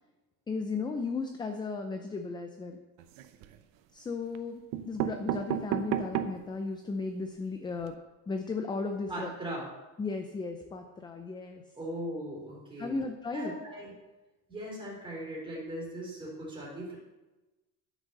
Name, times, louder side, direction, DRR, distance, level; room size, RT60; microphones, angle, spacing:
voice 1, 0.5-2.8 3.9-8.0 8.3-9.3 10.0-11.6 12.8-13.5, left 4 dB, 15° left, 5 dB, 0.5 m, -35 dB
sound 1, 3.0-3.6 4.3-4.4 4.7-6.5 7.0-7.1 7.3-7.4 7.7-7.9, right 11 dB, 70° right, 0.8 m, -33 dB
voice 2, 9.1-9.7 11.8-13.0 13.3-13.9 14.5-16.9, right 1 dB, 15° right, -4 dB, 3.8 m, -39 dB
11.5 x 6.2 x 6.6 m, 1.1 s
cardioid pair, 165°, 35 cm